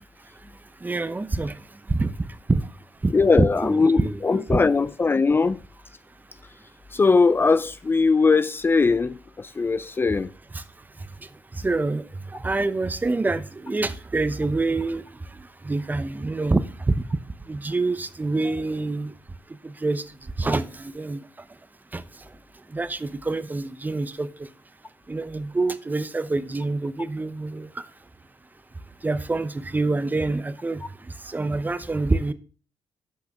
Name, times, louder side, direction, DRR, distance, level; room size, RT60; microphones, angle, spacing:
voice 1, 0.8-1.6 1.9-2.7 3.0-3.1 3.6-4.6 10.5-10.6 11.5-15.0 15.3-17.0 17.5-19.1 19.6-21.2 21.9-22.0 22.7-24.5 25.1-27.8 29.0-30.8 31.2-32.3, right 3 dB, 25° right, 0.8 m, -26 dB
voice 2, 3.1-5.6 6.9-10.3, left 4 dB, 30° left, 0.4 m, -20 dB
8.7 x 6.0 x 6.1 m
cardioid pair, 65°, 8 cm